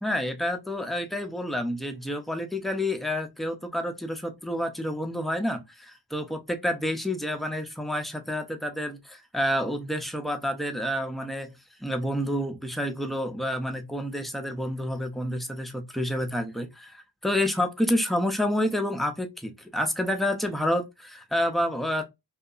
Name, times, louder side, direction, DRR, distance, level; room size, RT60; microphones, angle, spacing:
voice 1, 0.0-11.5 11.8-22.1, left 1 dB, ahead, 0.3 m, -29 dB
2.7 x 2.3 x 2.3 m
wide cardioid pair, 120°, 39 cm